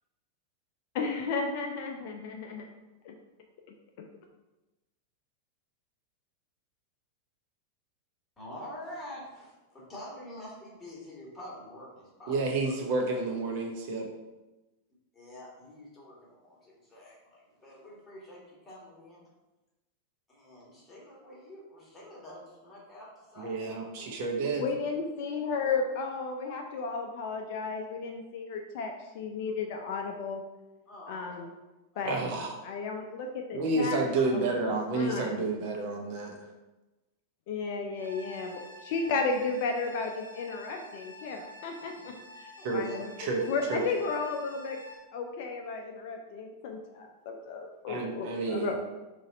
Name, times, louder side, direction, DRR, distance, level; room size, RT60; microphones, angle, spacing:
voice 1, 0.9-2.7 3.0-3.1 4.0-4.1 24.6-30.4 31.1-31.5 32.0-32.2 32.6-34.0 34.3-34.5 34.9-35.5 37.5-44.8 45.1-48.8, left 4 dB, 50° left, 3 dB, 0.4 m, -34 dB
voice 2, 8.4-13.0 15.1-19.2 20.3-24.2 30.9-31.4 31.9-32.2 42.6-43.0 44.1-44.2 48.3-48.7, left 1 dB, 15° left, -6 dB, 1.5 m, -47 dB
voice 3, 12.3-14.1 23.4-24.6 32.0-32.5 33.5-36.4 42.6-42.8 43.2-43.4 43.7-43.8 47.9-48.8, right 3 dB, 45° right, 1 dB, 0.6 m, -30 dB
sound 1, 38.0-44.9, left 1 dB, 85° right, 0.7 m, -48 dB
3.9 x 2.5 x 4.0 m, 1.1 s
figure-of-eight pair, 90°, 0 cm